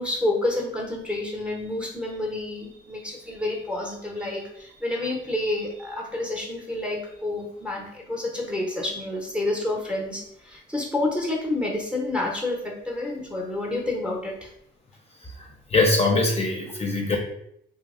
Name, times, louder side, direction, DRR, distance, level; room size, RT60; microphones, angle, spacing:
voice 1, 0.0-14.5, left 2 dB, 5° right, 0 dB, 0.7 m, -29 dB
voice 2, 15.2-17.2, left 2 dB, 30° left, 0 dB, 0.6 m, -23 dB
2.8 x 2.1 x 3.6 m, 0.73 s
cardioid pair, 90°, 20 cm